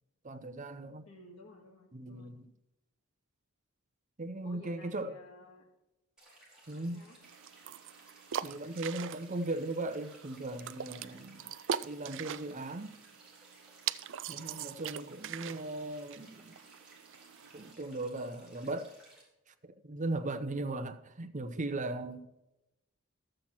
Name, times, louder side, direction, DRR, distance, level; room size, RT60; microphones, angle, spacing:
voice 1, 0.2-1.1 1.9-2.5 4.2-5.2 6.7-7.0 8.4-11.5 11.8-13.0 14.3-16.5 17.5-19.0 19.6-22.3, right 2 dB, 35° right, 0.8 m, -38 dB
voice 2, 1.1-2.3 4.4-5.6 6.9-7.2 14.3-14.6, left 1 dB, 70° left, 1.8 m, -54 dB
sound 1, 6.2-19.2, right 1 dB, 5° right, 4.0 m, -60 dB
sound 2, 7.2-17.7, right 9 dB, 60° right, 0.4 m, -42 dB
12.5 x 7.6 x 4.4 m
head